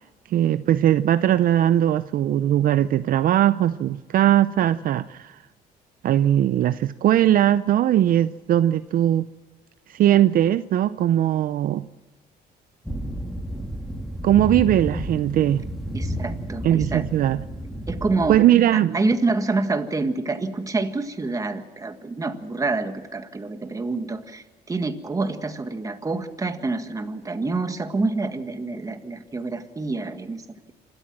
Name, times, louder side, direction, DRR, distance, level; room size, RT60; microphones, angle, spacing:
voice 1, 0.3-5.4 6.0-9.3 9.9-11.9 14.2-15.6 16.6-17.4 18.3-19.0, right 11 dB, 55° right, 14 dB, 0.6 m, -19 dB
sound 1, 12.9-18.4, right 1 dB, ahead, 2.4 m, -31 dB
voice 2, 15.9-17.1 17.9-18.4 18.7-30.7, right 3 dB, 20° right, 8 dB, 1.8 m, -27 dB
27.0 x 13.0 x 7.6 m, 1.4 s
cardioid pair, 110°, 17 cm